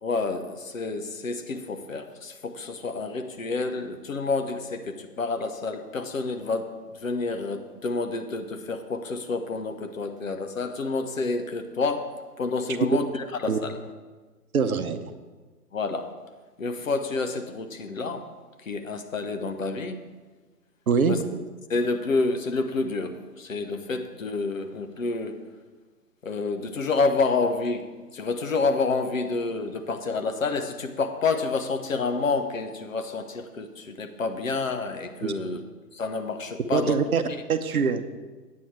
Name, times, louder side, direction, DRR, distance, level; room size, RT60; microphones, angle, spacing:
voice 1, 0.0-12.1 12.4-13.8 15.7-16.1 16.6-18.3 18.6-20.0 21.1-21.2 21.7-25.4 26.2-35.6 35.9-37.0 37.3-37.4, left 3 dB, 55° left, 7 dB, 1.0 m, -29 dB
voice 2, 14.5-15.1 20.9-21.4 35.2-35.3 36.7-37.2 37.5-38.0, right 5 dB, 65° right, 10 dB, 0.8 m, -24 dB
8.9 x 8.5 x 4.5 m, 1.3 s
figure-of-eight pair, 140°, 47 cm